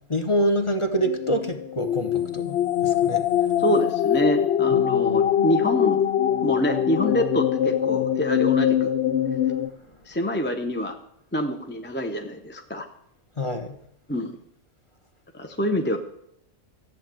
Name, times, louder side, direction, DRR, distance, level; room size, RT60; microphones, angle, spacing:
voice 1, 0.1-3.3 4.7-5.3 13.4-13.8, equal, 25° left, 5 dB, 1.1 m, -26 dB
sound 1, 1.0-9.7, left 10 dB, 65° left, 0.9 m, -23 dB
voice 2, 3.6-6.0 6.4-8.9 10.1-10.9 11.3-12.9 14.1-14.4 15.3-16.0, equal, 10° left, 4 dB, 0.8 m, -26 dB
14.0 x 8.4 x 7.7 m, 0.76 s
omnidirectional pair, 1.3 m